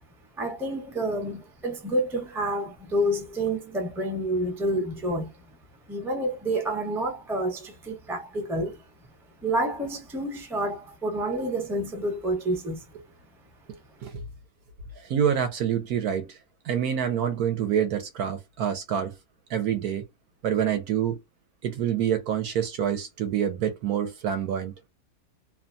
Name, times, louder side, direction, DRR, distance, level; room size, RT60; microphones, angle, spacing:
voice 1, 0.4-5.3 5.9-8.8 9.4-12.8, right 1 dB, 5° right, 0.4 m, -28 dB
voice 2, 15.0-16.4 16.6-19.2 19.5-20.0 20.4-21.2 21.6-24.7, right 9 dB, 70° right, 1.0 m, -26 dB
2.8 x 2.3 x 2.5 m
omnidirectional pair, 1.9 m